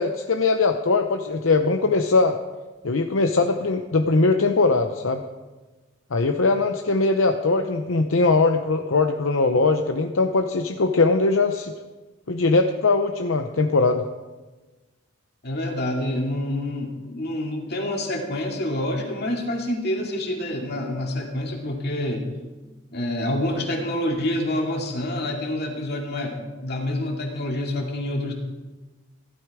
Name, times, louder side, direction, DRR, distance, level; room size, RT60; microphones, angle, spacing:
voice 1, 0.0-2.4 2.8-5.2 6.1-11.7 12.3-14.0, left 3 dB, 70° left, 6 dB, 0.7 m, -21 dB
voice 2, 15.4-22.3 22.9-28.3, left 1 dB, 50° left, 1 dB, 2.4 m, -27 dB
15.5 x 12.5 x 4.9 m, 1.2 s
head